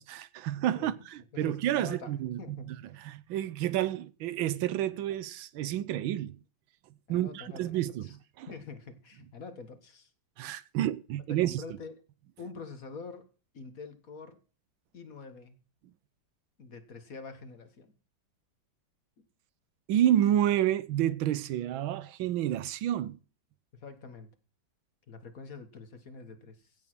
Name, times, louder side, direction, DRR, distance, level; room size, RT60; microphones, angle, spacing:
voice 1, 0.0-2.4 2.7-6.4 7.1-8.5 10.4-11.6 19.9-23.2, right 12 dB, 90° right, 1.6 m, -29 dB
voice 2, 0.7-1.0 1.3-2.8 7.1-8.2 8.5-10.1 11.3-12.0 12.4-13.3 13.5-14.4 14.9-15.6 16.6-17.9 19.2-19.3 23.7-24.3 25.1-26.8, left 4 dB, 45° left, 1.9 m, -46 dB
16.5 x 7.4 x 6.1 m
omnidirectional pair, 2.1 m